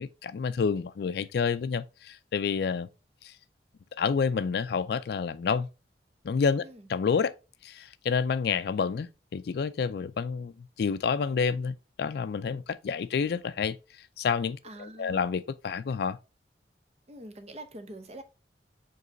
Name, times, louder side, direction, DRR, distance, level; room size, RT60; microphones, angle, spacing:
voice 1, 0.0-2.9 3.2-3.3 4.0-5.7 6.2-6.6 6.9-7.3 7.6-13.8 14.2-16.2, left 6 dB, 60° left, 0.3 m, -29 dB
voice 2, 14.6-15.3 17.1-18.2, right 1 dB, 35° right, 0.8 m, -45 dB
5.2 x 3.9 x 2.6 m
head